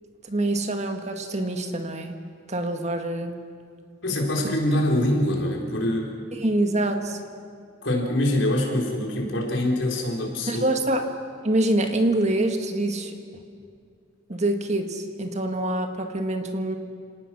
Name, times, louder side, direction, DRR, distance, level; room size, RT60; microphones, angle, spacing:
voice 1, 0.3-2.2 2.5-3.3 6.3-7.2 10.5-11.1 11.4-13.2 14.3-16.8, right 1 dB, 35° right, 5 dB, 1.7 m, -25 dB
voice 2, 4.0-6.1 7.8-10.6, left 1 dB, 80° left, -1 dB, 4.4 m, -24 dB
29.5 x 18.5 x 6.2 m, 2.3 s
head